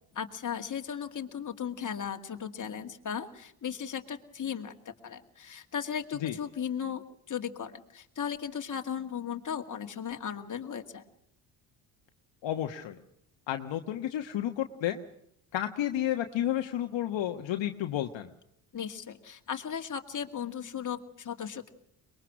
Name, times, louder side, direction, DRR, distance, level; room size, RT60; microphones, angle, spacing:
voice 1, 0.1-11.0 18.7-21.7, left 8 dB, 40° left, 5 dB, 2.3 m, -36 dB
voice 2, 12.4-13.0 13.5-15.0 15.5-18.3, left 12 dB, 60° left, 5 dB, 1.4 m, -31 dB
23.0 x 21.5 x 6.1 m, 0.73 s
supercardioid pair, 75°, 49 cm